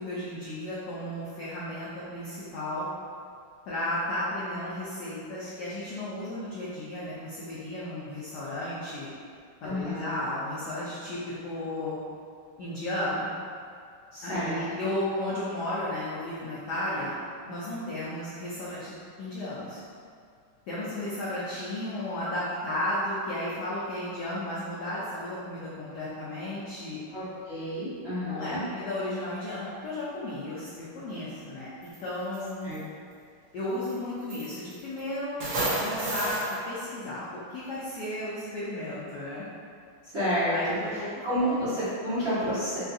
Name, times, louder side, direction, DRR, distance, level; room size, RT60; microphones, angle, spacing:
voice 1, 0.0-2.9 3.7-9.1 9.6-12.0 12.6-13.3 14.2-17.2 17.5-18.9 19.2-19.8 20.7-27.0 28.3-32.7 33.5-35.4 35.8-36.4 36.7-39.5 40.5-41.1 41.4-41.5, left 1 dB, 85° left, -9 dB, 0.8 m, -34 dB
voice 2, 9.6-10.1 14.1-14.5 27.1-28.6 32.6-32.8 40.0-40.8 41.2-42.8, equal, 40° right, -16 dB, 1.0 m, -30 dB
sound 1, 31.8-32.0 32.3-32.8 33.9-34.0 34.3-35.0 35.4-36.5, right 1 dB, 75° right, 0.9 m, -30 dB
3.6 x 2.3 x 2.5 m, 2.3 s
omnidirectional pair, 2.4 m